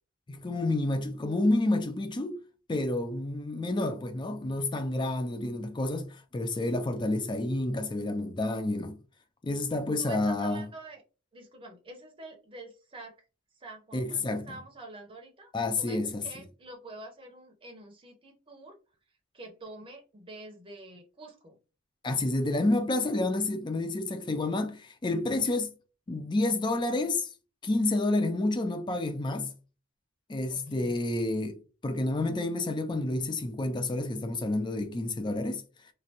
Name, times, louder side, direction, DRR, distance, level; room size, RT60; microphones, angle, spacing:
voice 1, 0.3-2.4 2.7-9.0 9.4-10.7 13.9-14.5 15.5-16.2 22.0-25.7 26.1-27.3 27.6-29.5 30.3-31.6 31.8-35.6, left 2 dB, 20° left, 0.4 m, -29 dB
voice 2, 10.0-11.0 11.3-13.2 13.6-18.8 19.3-21.6 30.5-31.1, right 2 dB, 25° right, 0.7 m, -47 dB
3.2 x 2.4 x 2.8 m
head